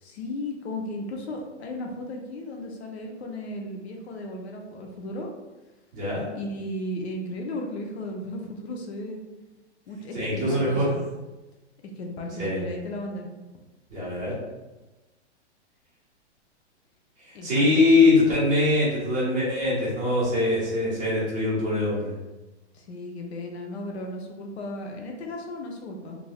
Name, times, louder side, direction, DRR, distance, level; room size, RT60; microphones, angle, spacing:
voice 1, 0.0-5.3 6.3-9.2 9.9-11.0 12.0-13.3 17.3-18.1 22.7-26.2, left 1 dB, 65° left, 1 dB, 0.6 m, -35 dB
voice 2, 5.9-6.2 10.1-10.9 12.4-12.6 13.9-14.3 17.4-22.1, left 2 dB, 20° right, -9 dB, 1.2 m, -22 dB
3.3 x 2.5 x 2.3 m, 1.1 s
hypercardioid pair, 160°, 35 cm